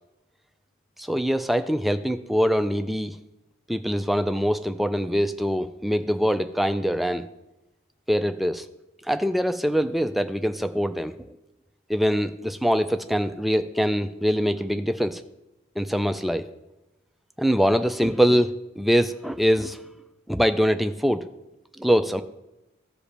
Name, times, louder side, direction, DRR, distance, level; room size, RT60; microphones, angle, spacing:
voice 1, 1.0-3.2 3.7-7.3 8.1-8.7 9.0-11.2 11.9-15.2 15.8-16.5 17.4-19.8 20.3-21.2 21.8-22.2, equal, ahead, 9 dB, 0.3 m, -23 dB
15.0 x 5.1 x 3.3 m, 0.96 s
head